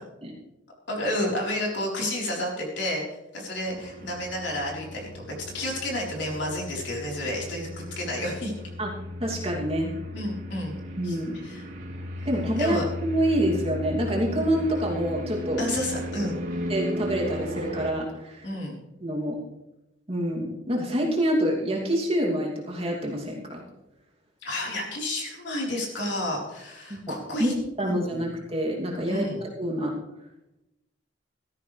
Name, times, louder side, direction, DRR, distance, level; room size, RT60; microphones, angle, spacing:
voice 1, 0.9-3.0 3.3-5.2 5.5-7.7 8.0-8.5 10.1-10.8 11.0-11.7 12.6-12.8 15.6-16.4 18.4-18.8 24.4-27.5 28.1-28.2 29.0-29.4, left 1 dB, 65° left, -2 dB, 4.2 m, -30 dB
sound 1, 3.7-17.9, equal, 85° right, 3.0 m, -36 dB
voice 2, 9.2-9.9 11.0-11.4 12.2-15.6 16.7-18.5 19.0-19.4 20.1-23.6 26.9-29.3 29.6-29.9, equal, 30° right, -2 dB, 2.8 m, -27 dB
17.0 x 13.0 x 3.4 m, 0.92 s
head